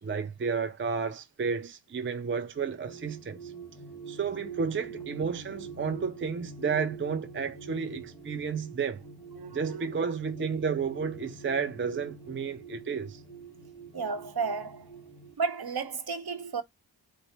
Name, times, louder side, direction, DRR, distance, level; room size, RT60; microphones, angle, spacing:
voice 1, 0.0-3.5 4.1-9.0 9.5-13.2, right 5 dB, 30° right, 0.4 m, -32 dB
sound 1, 2.5-15.3, right 5 dB, 5° left, 1.2 m, -45 dB
voice 2, 9.3-9.9 13.9-15.0 15.4-16.6, right 5 dB, 55° right, 0.8 m, -33 dB
4.0 x 2.0 x 3.1 m
wide cardioid pair, 70°, 44 cm